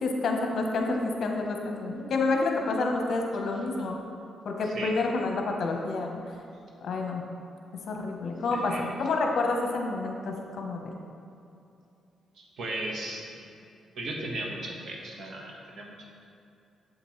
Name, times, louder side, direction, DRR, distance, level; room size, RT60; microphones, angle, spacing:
voice 1, 0.0-4.0 4.4-6.2 6.8-7.3 7.9-10.9, left 3 dB, 60° left, 1 dB, 1.0 m, -29 dB
voice 2, 8.5-9.0 12.3-13.5 13.9-16.1, right 1 dB, 65° right, -1 dB, 1.4 m, -37 dB
7.8 x 7.6 x 3.2 m, 2.7 s
cardioid pair, 115°, 0 cm